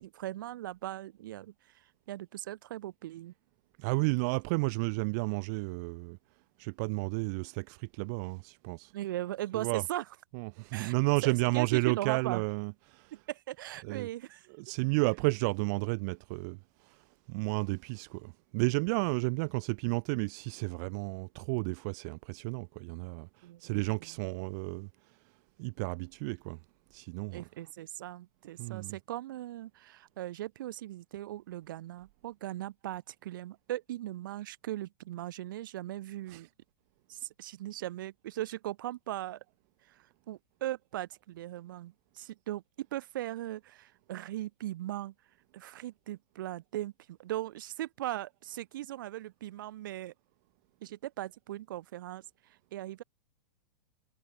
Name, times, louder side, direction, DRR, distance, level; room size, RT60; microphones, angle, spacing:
voice 1, 0.0-1.5 2.1-3.3 8.9-10.0 10.7-10.9 11.2-12.4 13.1-14.5 23.4-24.1 27.3-36.5 37.1-39.4 39.9-40.0 40.3-45.1 45.5-50.1 50.8-52.2 52.7-53.0, right 14 dB, 65° right, 2.4 m, -39 dB
voice 2, 3.8-6.2 6.6-8.9 9.5-9.9 10.3-13.2 13.8-14.1 14.5-24.9 25.6-26.6 26.9-27.5 28.6-29.0 36.3-36.5, right 31 dB, 50° right, 1.6 m, -32 dB
hypercardioid pair, 115°, 12 cm